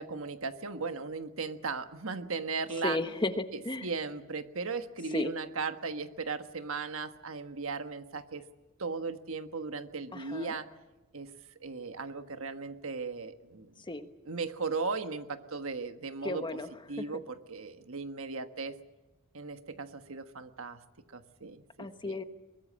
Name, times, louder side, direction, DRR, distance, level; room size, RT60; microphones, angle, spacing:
voice 1, 0.0-3.0 3.5-8.4 8.8-10.7 11.1-11.3 11.6-13.7 14.2-16.4 16.9-18.8 19.3-20.8 21.1-22.2, right 4 dB, 70° right, 8 dB, 1.4 m, -37 dB
voice 2, 2.8-3.9 5.1-5.3 10.1-10.6 13.9-14.1 16.2-16.7 17.0-17.1 21.8-22.2, left 2 dB, 20° left, 9 dB, 1.2 m, -34 dB
22.5 x 21.0 x 7.5 m, 1.1 s
head